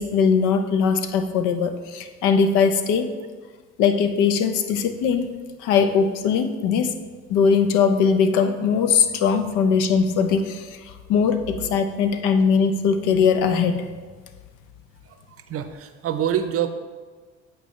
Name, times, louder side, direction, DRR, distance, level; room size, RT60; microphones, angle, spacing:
voice 1, 0.0-3.1 3.8-6.9 7.3-10.8 11.1-13.8, left 6 dB, 70° left, 8 dB, 0.7 m, -20 dB
voice 2, 15.1-16.7, right 10 dB, 45° right, 9 dB, 0.6 m, -26 dB
8.2 x 4.6 x 3.1 m, 1.5 s
supercardioid pair, 75°, 32 cm